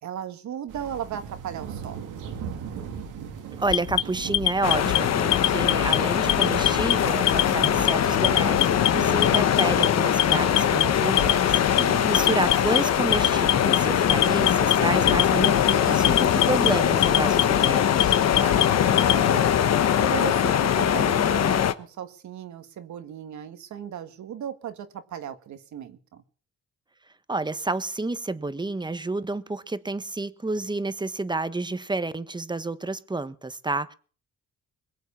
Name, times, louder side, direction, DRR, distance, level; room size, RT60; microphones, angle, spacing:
voice 1, 0.0-2.1 11.7-12.4 18.3-19.5 20.0-26.2, right 9 dB, 70° right, 1.8 m, -36 dB
sound 1, 0.7-17.7, right 7 dB, 90° right, 2.4 m, -40 dB
voice 2, 3.6-11.8 12.1-18.2 27.3-33.9, right 3 dB, 15° right, 1.1 m, -30 dB
Alarm, 3.7-5.0 5.3-6.0 6.3-6.9 7.3-7.9 8.2-8.9 9.2-9.9 10.2-10.8 11.2-11.8 12.1-12.8 13.1-13.8 14.1-14.7 15.1-15.7 16.0-16.7 17.0-17.7 18.0-19.2, left 15 dB, 85° left, 0.8 m, -23 dB
sound 2, 4.6-21.7, left 9 dB, 60° left, 1.1 m, -22 dB
21.5 x 8.0 x 7.1 m
cardioid pair, 90°, 30 cm